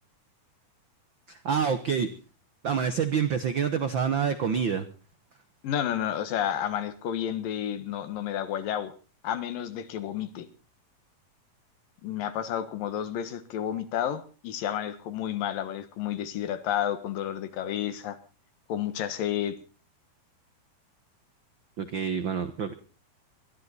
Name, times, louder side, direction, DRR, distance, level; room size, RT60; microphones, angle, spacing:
voice 1, 1.3-2.1 2.6-4.9 21.8-22.7, right 7 dB, 75° right, 10 dB, 1.1 m, -27 dB
voice 2, 5.6-8.9 9.2-10.5 12.0-18.2 18.7-19.6, left 10 dB, 85° left, 11 dB, 3.2 m, -31 dB
22.0 x 13.5 x 4.1 m, 0.35 s
omnidirectional pair, 3.8 m